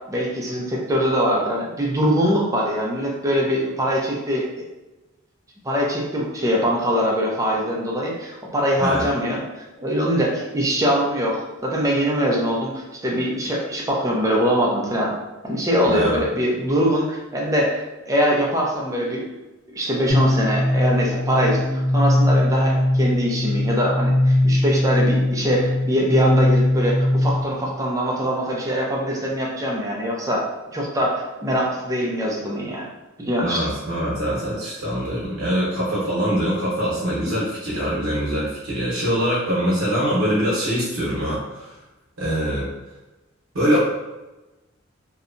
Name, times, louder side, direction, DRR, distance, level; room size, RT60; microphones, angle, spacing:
voice 1, 0.1-4.5 5.6-9.4 9.8-15.1 15.4-19.2 19.7-30.4 30.7-32.9 33.2-33.7, equal, 15° right, -3 dB, 0.5 m, -22 dB
voice 2, 15.9-16.2 33.4-41.7 42.2-42.7 43.5-43.8, equal, 80° right, -7 dB, 0.8 m, -23 dB
sound 1, 20.1-27.7, left 1 dB, 70° left, 0.9 m, -20 dB
2.8 x 2.2 x 2.5 m, 1.1 s
head